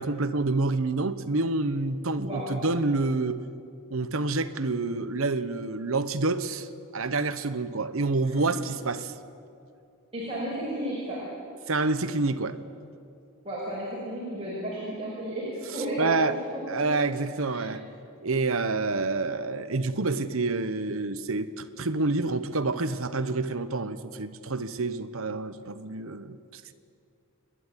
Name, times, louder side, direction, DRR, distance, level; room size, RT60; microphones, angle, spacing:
voice 1, 0.0-3.4 3.9-6.7 6.9-9.1 11.7-12.6 16.0-16.4 16.7-17.9 18.2-26.7, right 3 dB, 70° right, 12 dB, 1.0 m, -28 dB
voice 2, 10.1-11.2 13.4-15.5 15.7-16.1 16.5-16.8 17.5-17.6, right 1 dB, 25° right, -6 dB, 6.1 m, -33 dB
29.0 x 11.5 x 9.8 m, 2.5 s
head